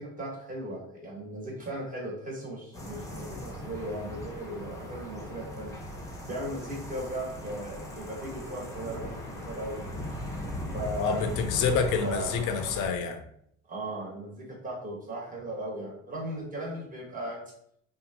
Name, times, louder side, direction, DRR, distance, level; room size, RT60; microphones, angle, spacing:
voice 1, 0.0-5.7 6.3-9.8 10.7-11.2 11.6-12.4 13.7-17.4, right 1 dB, 25° right, -4 dB, 1.4 m, -37 dB
sound 1, 2.7-12.9, left 1 dB, 10° left, 0.9 m, -39 dB
voice 2, 11.0-13.2, left 5 dB, 65° left, 6 dB, 0.5 m, -27 dB
2.7 x 2.3 x 2.8 m, 0.69 s
hypercardioid pair, 65°, 33 cm